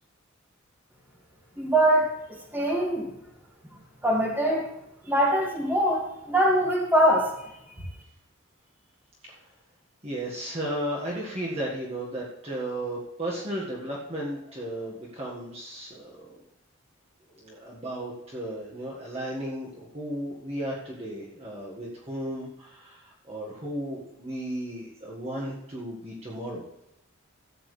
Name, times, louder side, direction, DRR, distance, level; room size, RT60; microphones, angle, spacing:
voice 1, 1.6-3.1 4.0-4.7 5.1-7.5, right 1 dB, 10° right, -2 dB, 2.1 m, -23 dB
voice 2, 10.0-16.4 17.4-26.6, right 1 dB, 30° right, -4 dB, 1.7 m, -34 dB
13.5 x 8.9 x 3.3 m, 0.85 s
head